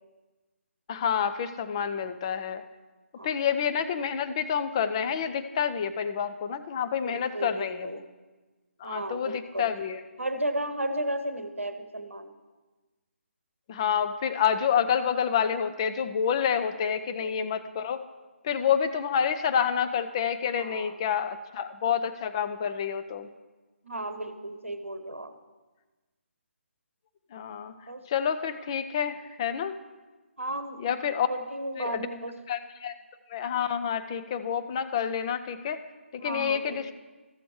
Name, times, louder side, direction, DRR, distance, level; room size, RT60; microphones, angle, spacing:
voice 1, 0.9-2.6 3.2-8.0 8.8-10.0 13.7-18.0 18.4-23.3 27.3-27.7 28.1-29.8 30.8-31.3 31.8-32.1 32.5-33.0 33.3-35.8 36.1-36.9, left 8 dB, 25° left, 9 dB, 0.4 m, -28 dB
voice 2, 7.0-8.0 8.8-9.7 10.2-12.3 16.9-17.4 20.6-20.9 23.8-25.3 27.9-28.0 30.4-32.3 36.2-36.9, right 1 dB, 80° right, 9 dB, 0.9 m, -34 dB
14.0 x 6.8 x 3.2 m, 1.2 s
figure-of-eight pair, 145°, 7 cm